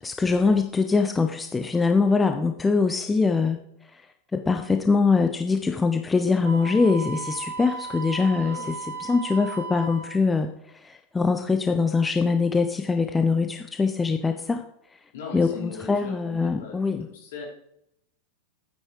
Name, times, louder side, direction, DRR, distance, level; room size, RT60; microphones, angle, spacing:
voice 1, 0.0-3.6 3.9-4.0 4.3-8.6 9.0-14.7 15.3-17.0, left 4 dB, 10° left, 6 dB, 0.9 m, -23 dB
Wind instrument woodwind instrument, 6.4-10.2, right 4 dB, 65° right, 1.9 m, -36 dB
voice 2, 8.4-8.7 15.1-17.5, left 6 dB, 55° left, -3 dB, 5.3 m, -39 dB
12.5 x 9.6 x 4.9 m, 0.77 s
figure-of-eight pair, 90°, 0 cm